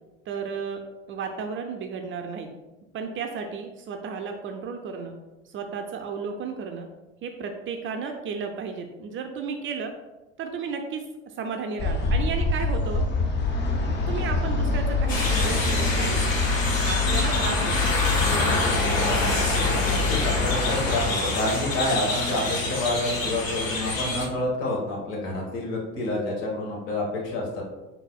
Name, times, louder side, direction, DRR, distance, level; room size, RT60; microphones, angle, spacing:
voice 1, 0.3-0.8 1.1-2.5 2.9-5.2 5.5-6.9 7.2-9.9 10.4-11.0 11.4-13.1 14.1-16.2 16.8-17.9 18.3-18.9, right 5 dB, 35° right, 5 dB, 0.4 m, -33 dB
sound 1, 11.8-21.1, left 3 dB, 30° left, 0.6 m, -26 dB
sound 2, 15.1-24.3, left 2 dB, 85° left, 0.8 m, -26 dB
voice 2, 19.8-27.6, left 1 dB, 60° left, -2 dB, 1.4 m, -28 dB
4.0 x 3.9 x 2.3 m, 1.1 s
figure-of-eight pair, 65°, 39 cm